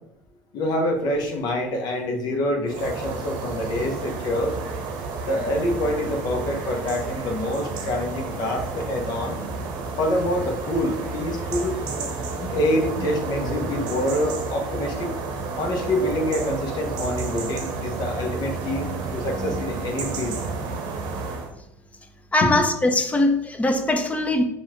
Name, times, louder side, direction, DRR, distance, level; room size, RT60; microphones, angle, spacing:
voice 1, 0.5-4.6 5.2-9.4 10.0-11.8 12.5-15.1 15.6-18.9 19.1-20.5 22.4-22.6, left 1 dB, 55° left, 1.0 m, -26 dB
sound 1, 2.7-21.5, right 4 dB, 60° right, 0.8 m, -31 dB
sound 2, 5.1-14.0, left 2 dB, 30° left, 1.2 m, -40 dB
voice 2, 22.3-24.4, left 2 dB, 15° left, 0.6 m, -21 dB
5.5 x 2.5 x 3.0 m
hypercardioid pair, 70°, 8 cm